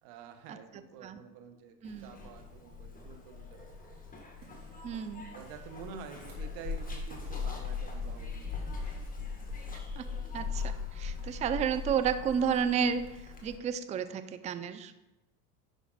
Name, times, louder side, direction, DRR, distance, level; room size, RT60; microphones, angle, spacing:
voice 1, 0.0-3.7 5.3-8.7, right 6 dB, 60° right, 6 dB, 1.4 m, -49 dB
Zipper (clothing), 1.8-13.6, left 5 dB, 15° left, 1.9 m, -40 dB
voice 2, 1.8-2.2 4.8-5.2 10.0-10.1 10.3-14.9, right 7 dB, 15° right, 11 dB, 0.4 m, -32 dB
sound 1, 3.9-11.2, right 2 dB, 45° right, 3.3 m, -60 dB
10.5 x 5.6 x 4.1 m, 1.0 s
hypercardioid pair, 90°, 47 cm